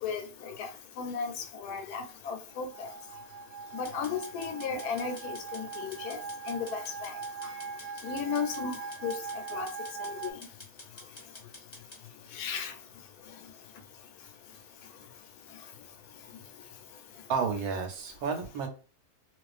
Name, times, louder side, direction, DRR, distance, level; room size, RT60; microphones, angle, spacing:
voice 1, 0.0-0.7 1.0-1.3 1.6-2.9 3.7-6.2 6.5-7.1 8.0-8.8 9.0-9.1 9.5-9.7 10.0-10.3 12.4-12.7, left 6 dB, 85° left, 6 dB, 1.1 m, -35 dB
sound 1, 2.5-10.3, right 5 dB, 60° right, 0.9 m, -41 dB
sound 2, 3.8-12.0, left 2 dB, 30° left, 0.6 m, -50 dB
voice 2, 17.3-18.7, right 5 dB, 90° right, 5 dB, 1.2 m, -31 dB
2.4 x 2.4 x 2.4 m, 0.36 s
omnidirectional pair, 1.6 m